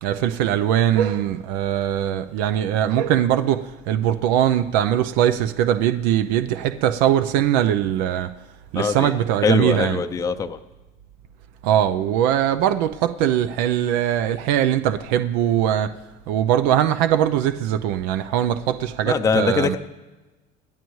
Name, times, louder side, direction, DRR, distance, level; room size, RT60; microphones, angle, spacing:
voice 1, 0.0-8.3 8.7-10.0 11.6-15.9 16.3-19.8, right 10 dB, 80° right, 9 dB, 0.6 m, -21 dB
voice 2, 8.7-10.6 19.1-19.8, left 5 dB, 20° left, 7 dB, 0.5 m, -23 dB
27.0 x 10.5 x 3.2 m, 1.2 s
cardioid pair, 140°, 17 cm